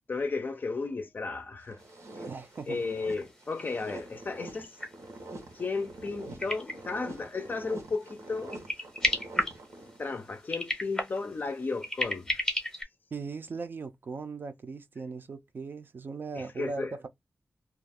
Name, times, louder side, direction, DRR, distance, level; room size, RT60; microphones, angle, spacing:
voice 1, 0.1-1.8 2.7-4.8 5.5-8.6 10.0-12.4 16.3-16.9, left 4 dB, 40° left, 0.5 m, -34 dB
sound 1, 1.6-10.2, right 2 dB, 90° right, 1.0 m, -45 dB
sound 2, 2.1-2.2 2.4-2.5 2.9-7.4 7.8-8.2 8.4-10.0 10.4-12.8, left 1 dB, 10° left, 0.8 m, -33 dB
voice 2, 2.2-2.8 13.1-17.1, right 4 dB, 45° right, 0.5 m, -38 dB
2.4 x 2.3 x 3.4 m
wide cardioid pair, 165°, 5 cm